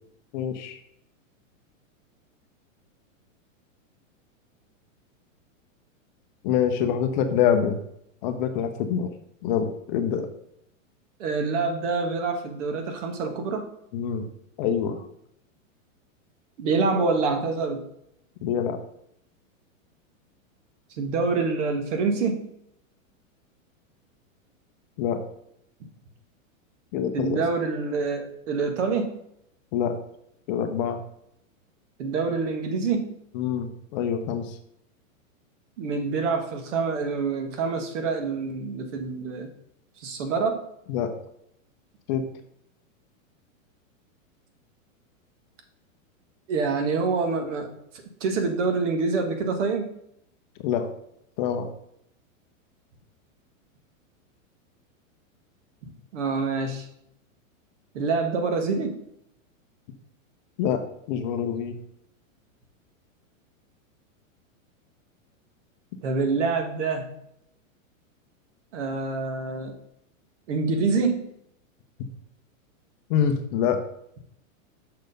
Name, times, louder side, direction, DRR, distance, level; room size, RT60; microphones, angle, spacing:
voice 1, 0.3-0.8 6.4-7.8 8.2-9.1 9.4-10.3 13.9-14.3 14.6-15.0 18.4-18.8 25.0-25.2 26.9-27.4 29.7-29.9 30.5-31.0 33.3-34.6 40.9-41.1 42.1-42.3 50.6-50.9 51.4-51.7 60.6-60.8 61.1-61.7 73.1-73.8, left 8 dB, 35° left, 7 dB, 0.7 m, -25 dB
voice 2, 11.2-13.7 16.6-17.8 21.0-22.5 27.1-29.1 32.0-33.1 35.8-39.5 40.0-40.6 46.5-47.7 48.2-49.9 55.8-56.8 57.9-59.0 66.0-67.1 68.7-69.7 70.5-71.3, right 4 dB, 60° right, 5 dB, 1.6 m, -26 dB
6.6 x 4.5 x 5.1 m, 0.74 s
supercardioid pair, 150°, 41 cm